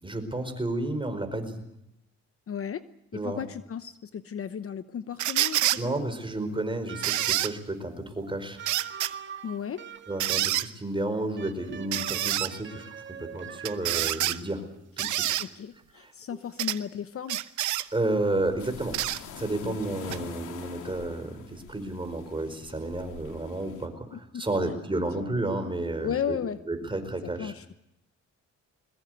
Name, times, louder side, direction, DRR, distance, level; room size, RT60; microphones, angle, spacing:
voice 1, 0.0-1.6 3.1-3.4 5.7-8.6 10.1-12.8 13.1-14.6 15.0-15.3 15.9-16.1 17.9-19.0 19.4-26.4 26.6-27.5, right 2 dB, 15° right, 7 dB, 4.9 m, -31 dB
voice 2, 2.5-2.8 3.1-6.0 9.4-9.8 15.0-15.1 15.4-17.4 19.6-19.8 24.1-24.4 26.0-26.6 27.4-27.7, left 8 dB, 50° left, 12 dB, 1.0 m, -35 dB
sound 1, 5.2-5.8 7.0-7.5 8.7-9.1 10.2-10.7 11.9-12.5 13.7-14.4 15.0-15.5 16.6-16.8 17.3-17.9 18.9-19.2 20.1-20.2, right 13 dB, 75° right, 0.9 m, -27 dB
sound 2, 6.9-7.6 8.6-10.4 11.4-14.6, right 8 dB, 40° right, 1.9 m, -44 dB
sound 3, 18.1-23.9, left 7 dB, 80° left, 2.7 m, -45 dB
22.0 x 21.0 x 8.0 m, 0.82 s
cardioid pair, 90°, 30 cm